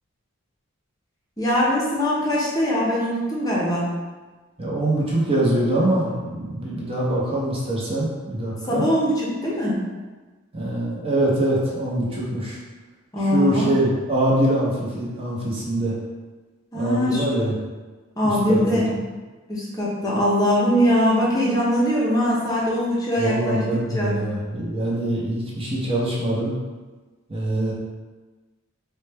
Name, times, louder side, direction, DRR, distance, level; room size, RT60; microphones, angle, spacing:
voice 1, 1.4-3.9 8.7-9.8 13.1-13.7 16.7-17.2 18.2-18.9 19.5-23.6 23.9-24.1, equal, 20° left, -6 dB, 0.6 m, -21 dB
voice 2, 4.6-8.9 10.5-12.6 13.3-16.0 16.7-17.6 18.2-18.8 23.2-26.5 27.3-27.7, right 1 dB, 30° right, -5 dB, 0.7 m, -24 dB
4.1 x 2.2 x 3.3 m, 1.3 s
head